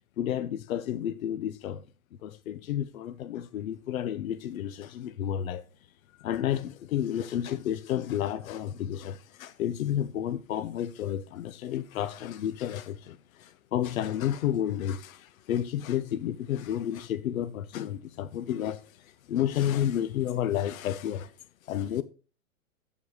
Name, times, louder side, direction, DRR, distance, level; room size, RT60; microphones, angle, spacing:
voice 1, 0.2-1.8 2.2-5.6 6.2-21.3 21.7-22.0, left 10 dB, 75° left, 0.7 m, -31 dB
8.2 x 7.3 x 4.8 m
hypercardioid pair, 135°, 42 cm